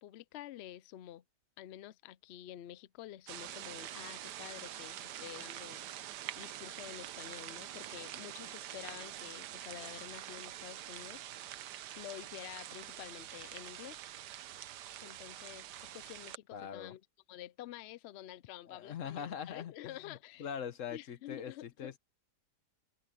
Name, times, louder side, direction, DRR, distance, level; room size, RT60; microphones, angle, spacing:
voice 1, 0.0-1.2 1.6-14.0 15.0-17.0 17.3-20.5 20.9-21.9, left 13 dB, 90° left, 0.5 m, -49 dB
sound 1, 3.3-16.4, right 12 dB, 85° right, 1.3 m, -46 dB
voice 2, 16.5-17.0 18.7-22.0, left 8 dB, 55° left, 1.3 m, -42 dB
omnidirectional pair, 1.8 m